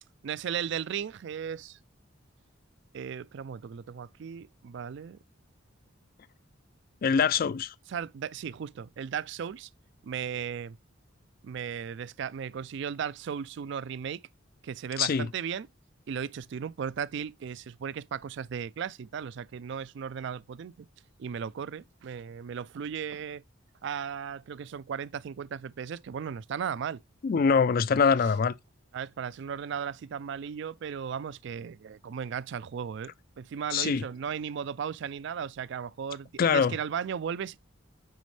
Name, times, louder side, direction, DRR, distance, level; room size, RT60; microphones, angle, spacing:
voice 1, 0.2-1.8 2.9-5.2 7.9-9.7 10.0-10.8 11.4-14.2 14.6-15.7 16.1-20.9 21.2-23.4 23.8-27.0 28.2-28.3 28.9-37.6, right 7 dB, 60° right, 0.3 m, -36 dB
voice 2, 7.0-7.7 15.0-15.3 27.2-28.5 33.7-34.0 36.4-36.7, left 6 dB, 45° left, 0.3 m, -24 dB
9.2 x 4.2 x 3.2 m
head